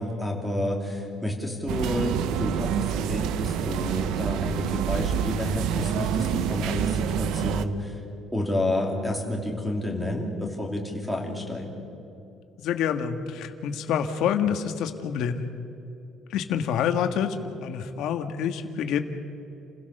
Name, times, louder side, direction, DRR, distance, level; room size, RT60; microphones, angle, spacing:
voice 1, 0.0-8.0 8.3-11.8, left 1 dB, ahead, 1 dB, 2.8 m, -30 dB
sound 1, 1.7-7.6, right 9 dB, 70° right, 0.9 m, -27 dB
voice 2, 12.6-15.5 16.3-19.0, left 8 dB, 65° left, 7 dB, 1.6 m, -27 dB
30.0 x 16.5 x 6.7 m, 2.8 s
cardioid pair, 180°, 0 cm